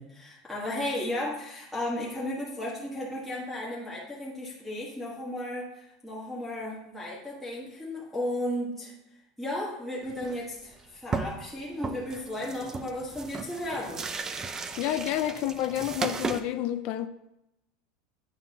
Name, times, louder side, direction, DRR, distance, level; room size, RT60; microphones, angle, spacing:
voice 1, 0.0-14.0, left 1 dB, 5° left, 1.4 m, -34 dB
sound 1, 10.1-10.4 10.8-10.9 11.1-11.5 11.8-16.4, right 4 dB, 20° right, 0.5 m, -35 dB
voice 2, 14.8-17.1, left 12 dB, 55° left, 0.4 m, -29 dB
9.0 x 5.7 x 2.8 m
supercardioid pair, 135°, 3 cm